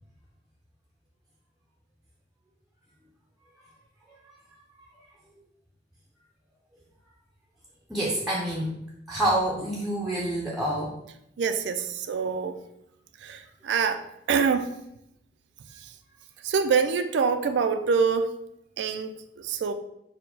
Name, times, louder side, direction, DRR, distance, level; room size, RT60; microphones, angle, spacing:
voice 1, 7.9-8.7 9.1-10.9, right 1 dB, ahead, 0.5 m, -27 dB
voice 2, 11.4-12.6 13.2-14.7 16.4-18.3 18.8-19.7, right 5 dB, 70° right, 0.4 m, -25 dB
4.5 x 2.1 x 3.9 m
head